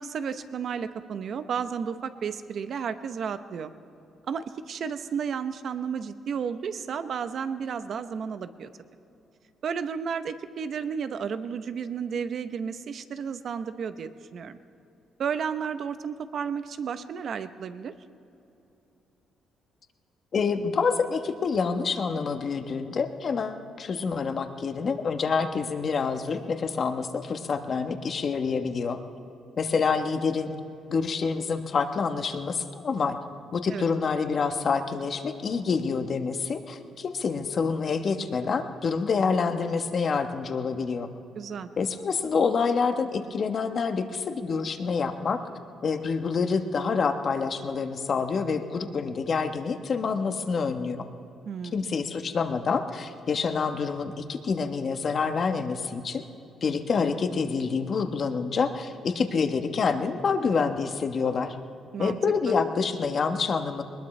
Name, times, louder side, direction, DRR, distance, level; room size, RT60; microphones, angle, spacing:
voice 1, 0.0-3.7 4.3-8.7 9.6-14.6 15.2-17.9 33.7-33.9 41.3-41.7 51.5-51.9 61.9-62.2 62.5-62.6, right 6 dB, 60° right, 11 dB, 0.8 m, -32 dB
voice 2, 20.3-29.0 29.6-30.5 30.9-33.2 33.5-41.1 41.8-45.4 45.8-51.0 51.7-56.2 56.6-61.6 62.0-63.8, left 5 dB, 50° left, 7 dB, 1.1 m, -27 dB
21.0 x 20.0 x 3.2 m, 2.8 s
cardioid pair, 90°, 0 cm